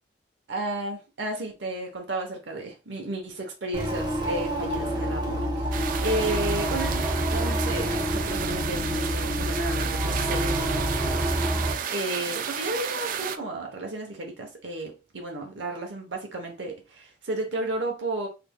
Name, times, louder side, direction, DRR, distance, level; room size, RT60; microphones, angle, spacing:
voice 1, 0.5-11.2 11.9-18.3, right 2 dB, 85° right, 0.9 m, -33 dB
sound 1, 3.7-11.7, equal, 25° right, 0.8 m, -27 dB
sound 2, 5.7-13.4, right 8 dB, 50° right, 0.3 m, -33 dB
3.5 x 3.3 x 2.2 m
head